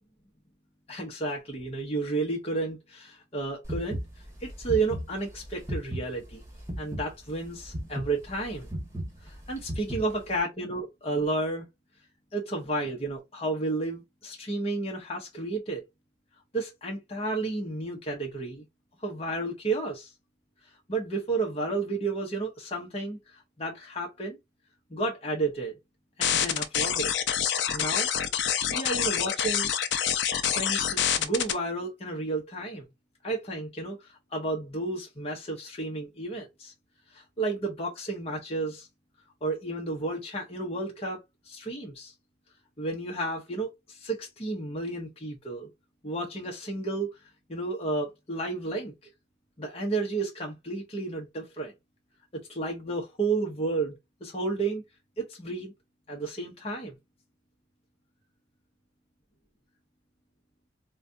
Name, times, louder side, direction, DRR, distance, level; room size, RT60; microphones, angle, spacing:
voice 1, 0.9-4.0 4.4-6.4 6.8-8.7 9.2-11.7 12.3-15.8 16.5-18.6 19.0-20.1 20.9-24.4 24.9-25.7 26.2-27.1 27.7-28.1 28.4-29.7 30.5-32.8 33.2-36.7 37.1-38.9 39.4-41.2 41.4-42.1 42.8-45.7 46.0-47.1 47.5-48.9 49.6-51.7 52.3-54.8 55.2-55.7 56.1-56.9, right 2 dB, 35° left, 0.9 m, -32 dB
sound 1, 3.6-10.4, equal, 15° right, 1.4 m, -36 dB
sound 2, 26.2-31.5, left 9 dB, 70° left, 0.5 m, -26 dB
4.0 x 2.3 x 2.6 m
head